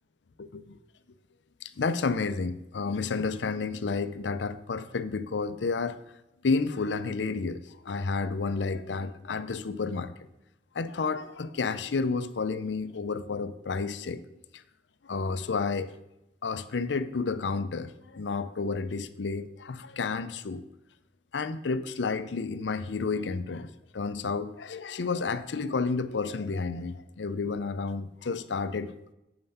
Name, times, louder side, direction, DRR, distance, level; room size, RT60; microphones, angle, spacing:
voice 1, 0.4-0.8 1.6-6.0 6.4-10.1 10.7-14.2 14.5-14.6 15.0-16.0 16.4-20.6 21.3-29.0, left 4 dB, 90° left, 12 dB, 0.5 m, -31 dB
7.7 x 5.6 x 5.5 m, 0.90 s
head